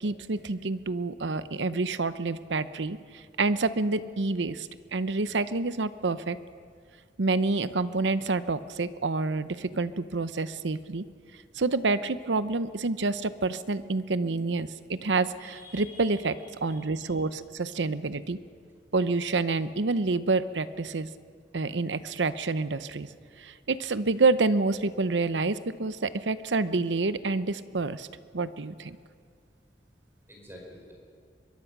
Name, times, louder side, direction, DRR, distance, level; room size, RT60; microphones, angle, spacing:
voice 1, 0.0-6.4 7.2-11.0 11.5-16.3 16.6-18.4 18.9-21.1 21.5-23.1 23.4-28.1 28.3-29.0, right 3 dB, 85° right, 14 dB, 0.8 m, -28 dB
voice 2, 15.4-16.2 16.7-17.1 30.3-30.9, left 1 dB, 15° right, -1 dB, 4.9 m, -49 dB
22.5 x 22.5 x 6.1 m, 2.1 s
head